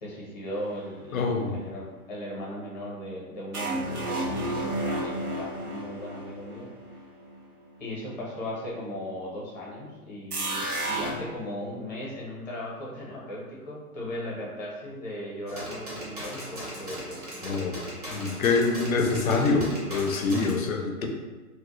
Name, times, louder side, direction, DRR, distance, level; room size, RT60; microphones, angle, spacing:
voice 1, 0.0-6.7 7.8-17.3 20.6-21.1, left 1 dB, 30° left, -5 dB, 0.6 m, -37 dB
voice 2, 1.1-1.6 17.4-17.8 18.1-21.1, left 4 dB, 65° left, 3 dB, 0.6 m, -25 dB
sound 1, 3.5-7.3 10.3-11.1, right 1 dB, 80° right, 0.7 m, -31 dB
sound 2, 15.5-20.5, equal, 30° right, 0.4 m, -38 dB
2.1 x 2.0 x 2.9 m, 1.2 s
figure-of-eight pair, 125°, 44 cm